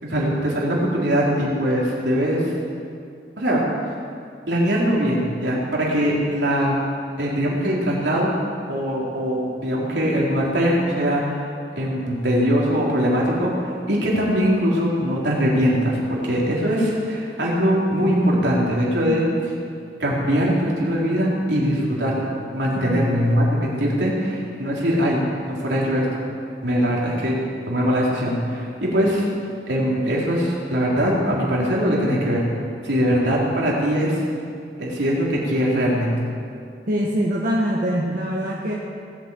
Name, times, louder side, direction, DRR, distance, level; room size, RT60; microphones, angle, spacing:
voice 1, 0.0-2.4 3.4-3.6 4.5-6.7 7.2-8.3 8.7-11.5 11.8-19.2 20.0-26.1 26.6-27.4 27.7-29.3 29.7-32.4 32.8-34.2 34.8-36.2, equal, 75° right, -4 dB, 4.0 m, -21 dB
voice 2, 22.8-23.1 36.9-38.7, equal, 50° right, -3 dB, 1.5 m, -24 dB
18.0 x 8.3 x 8.5 m, 2.4 s
head